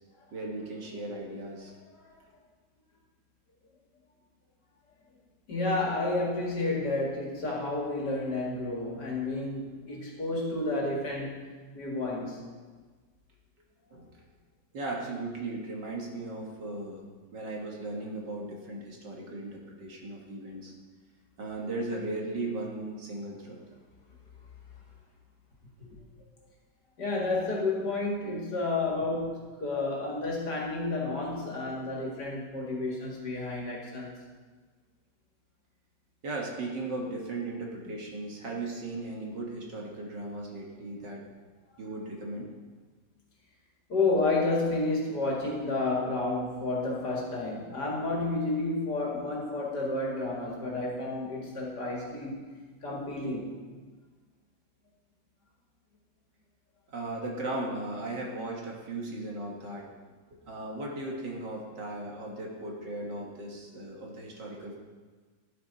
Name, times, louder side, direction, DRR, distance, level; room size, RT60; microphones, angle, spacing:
voice 1, 0.3-1.7 13.9-14.1 14.7-17.0 17.3-20.7 21.4-23.6 36.2-41.2 41.8-42.5 56.9-59.9 60.5-64.8, right 2 dB, 65° right, -1 dB, 2.2 m, -37 dB
voice 2, 5.5-11.5 11.7-12.4 25.8-25.9 27.0-34.1 43.9-52.4 52.8-53.5, left 2 dB, 60° left, -2 dB, 2.5 m, -31 dB
12.0 x 8.5 x 4.1 m, 1.4 s
omnidirectional pair, 2.0 m